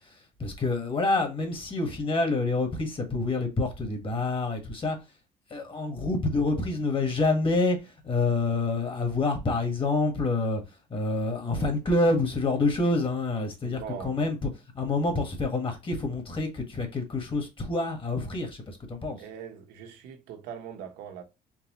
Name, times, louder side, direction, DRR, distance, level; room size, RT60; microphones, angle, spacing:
voice 1, 0.4-5.0 5.5-10.6 10.9-14.5 14.7-19.2, left 2 dB, 30° left, 1.7 m, -27 dB
voice 2, 13.6-14.2 19.2-21.2, right 8 dB, 90° right, 1.1 m, -41 dB
4.6 x 3.4 x 3.0 m
cardioid pair, 110°, 17 cm